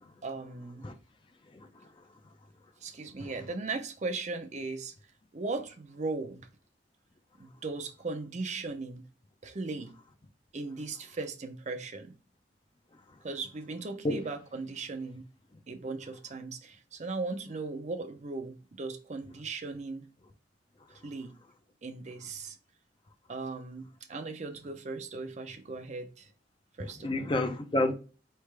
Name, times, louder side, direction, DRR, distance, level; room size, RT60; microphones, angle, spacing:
voice 1, 0.2-0.8 2.8-4.9 5.3-6.5 7.4-9.0 9.4-9.9 10.5-12.1 13.2-15.3 15.7-20.1 21.0-21.3 21.8-22.6 23.3-26.3 26.8-27.3, right 3 dB, 40° right, 0.6 m, -38 dB
voice 2, 26.8-27.9, left 2 dB, 30° left, 0.5 m, -30 dB
4.7 x 3.3 x 3.3 m
head